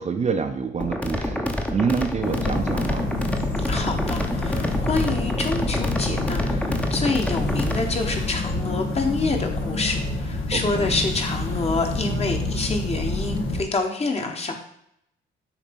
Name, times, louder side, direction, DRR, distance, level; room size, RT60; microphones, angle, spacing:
voice 1, 0.0-3.1 10.5-10.9, right 5 dB, 35° right, 6 dB, 0.6 m, -27 dB
sound 1, 0.8-7.8, left 1 dB, 5° left, 0.7 m, -28 dB
sound 2, 2.2-13.6, left 2 dB, 85° left, 1.3 m, -27 dB
voice 2, 3.7-14.6, left 3 dB, 30° left, 3 dB, 1.1 m, -27 dB
7.2 x 2.8 x 5.2 m, 0.74 s
cardioid pair, 90°, 20 cm